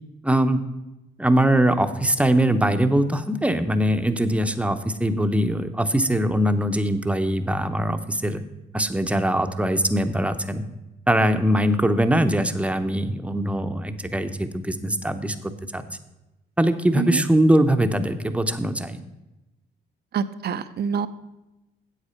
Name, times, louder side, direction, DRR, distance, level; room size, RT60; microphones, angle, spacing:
voice 1, 0.2-0.6 1.2-8.4 8.7-10.6 11.1-15.8 16.6-19.0, right 1 dB, 5° right, 8 dB, 0.7 m, -22 dB
voice 2, 20.1-21.1, right 7 dB, 55° right, 13 dB, 0.6 m, -26 dB
8.2 x 8.0 x 5.7 m, 0.98 s
cardioid pair, 90°, 20 cm